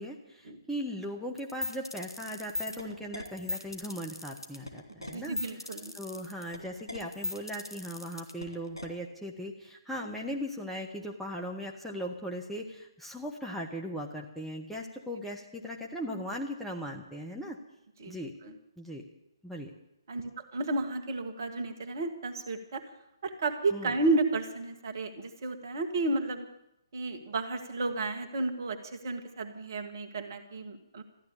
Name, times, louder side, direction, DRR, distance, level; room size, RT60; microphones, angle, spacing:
voice 1, 0.0-5.4 5.9-17.6 18.1-18.3 18.8-19.0 19.4-19.7 23.7-23.9, equal, ahead, -2 dB, 1.0 m, -38 dB
sound 1, 1.4-8.9, left 1 dB, 85° left, 3.0 m, -38 dB
voice 2, 5.1-5.9 15.1-15.2 18.0-18.2 18.4-18.5 20.1-22.8 23.2-26.5 26.9-31.0, right 2 dB, 45° right, 7 dB, 1.8 m, -32 dB
14.0 x 11.5 x 8.7 m, 0.85 s
figure-of-eight pair, 135°, 2 cm